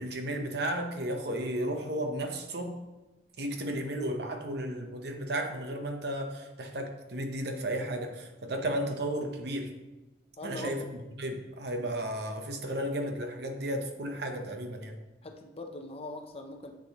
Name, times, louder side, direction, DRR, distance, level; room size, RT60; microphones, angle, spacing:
voice 1, 0.0-2.8 3.4-9.7 10.4-15.0, right 1 dB, 65° right, 4 dB, 0.9 m, -34 dB
voice 2, 10.4-10.9 15.2-16.7, left 2 dB, 35° left, 4 dB, 0.7 m, -41 dB
7.8 x 6.6 x 3.0 m, 1.1 s
head